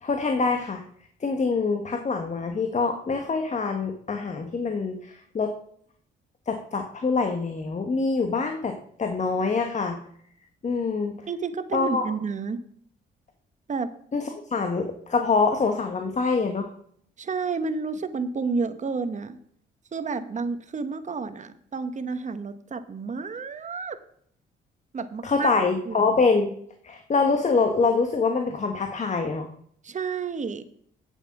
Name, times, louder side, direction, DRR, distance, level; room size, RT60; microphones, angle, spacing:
voice 1, 0.0-0.8 1.2-5.5 6.5-10.0 10.6-11.2 11.7-12.1 14.1-16.7 25.2-26.5 26.8-29.5, left 4 dB, 35° left, 5 dB, 1.3 m, -25 dB
voice 2, 11.3-12.6 13.7-13.9 17.2-19.4 19.9-24.0 24.9-25.5 25.9-26.2 29.8-30.6, right 4 dB, 35° right, 10 dB, 1.1 m, -30 dB
9.1 x 7.1 x 5.9 m, 0.63 s
cardioid pair, 90°, 20 cm